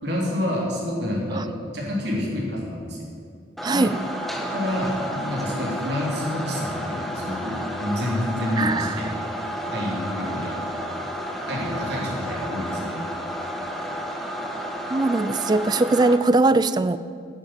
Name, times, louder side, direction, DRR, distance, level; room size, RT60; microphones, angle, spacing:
voice 1, 0.0-3.0 3.7-4.0 4.5-9.2 9.7-10.6 11.5-13.1, left 1 dB, 60° right, -3 dB, 3.4 m, -28 dB
sound 1, 3.6-16.2, equal, ahead, 1.0 m, -31 dB
voice 2, 3.6-3.9 8.6-9.1 14.9-17.0, right 2 dB, 20° right, 15 dB, 0.3 m, -21 dB
10.5 x 8.8 x 8.9 m, 2.3 s
head